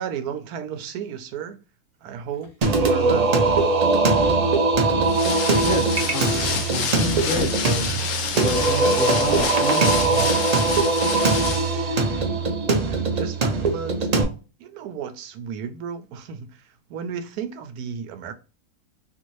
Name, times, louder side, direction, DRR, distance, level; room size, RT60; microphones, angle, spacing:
voice 1, 0.0-1.6 2.0-3.6 12.8-14.1 14.6-16.5 16.9-18.3, right 7 dB, 85° right, 1.1 m, -33 dB
Singing, 2.6-14.2, right 3 dB, 65° right, 0.4 m, -21 dB
sound 1, 5.0-11.7, left 6 dB, 75° left, 1.1 m, -28 dB
voice 2, 5.6-8.1 8.3-10.3, right 1 dB, 45° right, 0.9 m, -30 dB
2.9 x 2.6 x 3.0 m
omnidirectional pair, 1.6 m